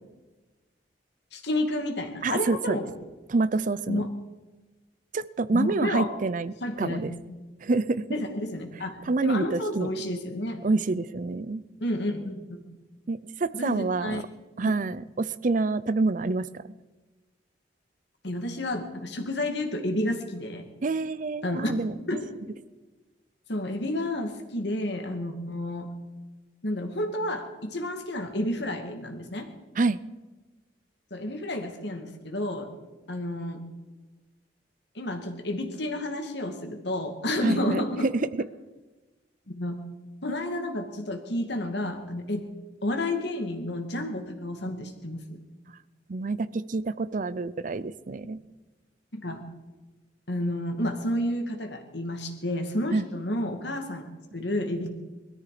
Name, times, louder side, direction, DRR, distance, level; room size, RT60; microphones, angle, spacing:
voice 1, 1.3-2.9 3.9-4.1 5.5-6.1 6.6-7.4 8.1-10.6 11.8-12.6 13.5-14.2 14.6-14.7 18.2-20.7 21.4-21.7 22.1-22.3 23.5-25.9 26.6-29.5 31.1-32.7 33.1-33.6 34.9-38.1 39.5-39.8 40.2-42.5 42.8-45.4 49.1-49.4 50.3-54.9, left 1 dB, 65° left, 5 dB, 2.3 m, -30 dB
voice 2, 2.2-2.8 3.3-4.0 5.1-7.1 7.6-8.0 9.1-9.9 10.6-11.6 13.1-14.2 14.6-16.6 20.8-21.9 29.8-30.0 37.4-38.4 46.1-48.4 52.9-53.1, right 3 dB, 45° right, 17 dB, 0.5 m, -27 dB
21.5 x 13.5 x 5.0 m, 1.2 s
head